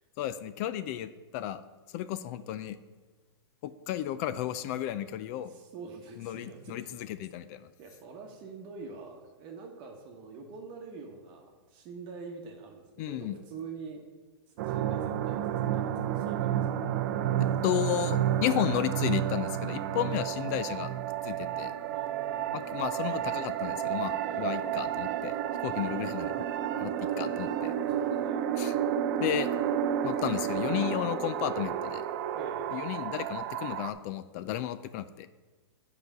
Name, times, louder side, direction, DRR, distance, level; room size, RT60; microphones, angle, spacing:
voice 1, 0.2-1.6 1.9-2.8 3.6-5.5 6.2-7.7 13.0-13.4 17.4-20.9 21.2-21.7 22.5-25.3 25.6-26.5 26.8-27.7 28.6-28.7 29.2-29.5 30.0-32.0 32.7-35.3, left 12 dB, 40° left, 14 dB, 0.3 m, -33 dB
voice 2, 5.5-6.9 7.8-14.0 14.5-16.6 20.0-20.5 21.9-22.7 24.2-24.8 27.7-28.4 32.3-32.8, right 4 dB, 35° right, 1 dB, 1.0 m, -45 dB
sound 1, 14.6-33.9, right 10 dB, 50° right, 0.5 m, -31 dB
7.0 x 4.9 x 6.5 m, 1.3 s
hypercardioid pair, 135°, 14 cm